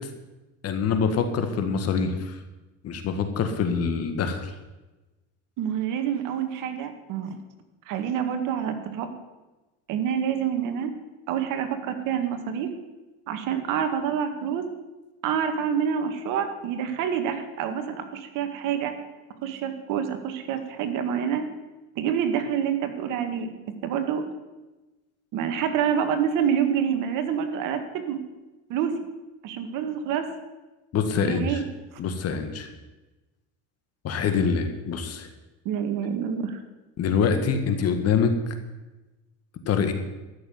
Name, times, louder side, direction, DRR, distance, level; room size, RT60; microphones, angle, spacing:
voice 1, 0.6-2.4 2.8-4.5 30.9-31.6 32.0-32.7 34.0-35.3 37.0-38.3 39.7-39.9, left 6 dB, 45° left, 7 dB, 1.8 m, -25 dB
voice 2, 5.6-7.4 7.9-9.1 9.9-10.9 11.3-12.7 13.3-14.6 15.2-19.0 19.4-21.5 22.0-23.5 23.8-24.2 25.3-28.2 28.7-29.0 29.4-30.3 31.1-31.6 35.7-36.6, right 8 dB, 60° right, 7 dB, 1.9 m, -27 dB
13.5 x 6.8 x 9.5 m, 1.1 s
supercardioid pair, 115°, 36 cm